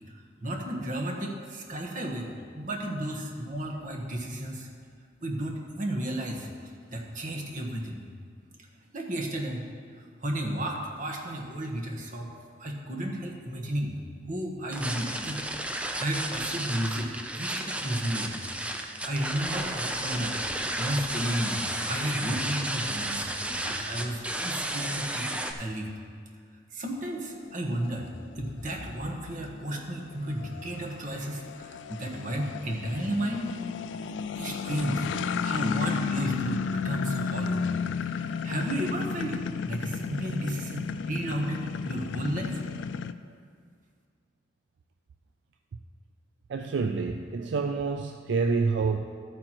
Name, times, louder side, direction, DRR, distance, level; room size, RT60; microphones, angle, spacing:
voice 1, 0.4-2.3 2.5-4.7 5.2-6.5 6.9-8.0 8.9-9.6 10.2-12.3 12.6-14.0 14.3-18.4 19.0-23.3 23.5-25.3 25.6-25.9 26.7-28.1 28.3-33.5 34.4-37.7 38.1-42.5, right 1 dB, 45° right, 1 dB, 1.2 m, -33 dB
sound 1, 14.7-25.5, right 1 dB, 5° right, 0.5 m, -33 dB
sound 2, 27.0-43.1, left 5 dB, 85° left, 0.3 m, -33 dB
voice 2, 46.5-49.0, right 4 dB, 70° right, 5 dB, 0.4 m, -27 dB
12.5 x 8.9 x 2.9 m, 2.1 s
head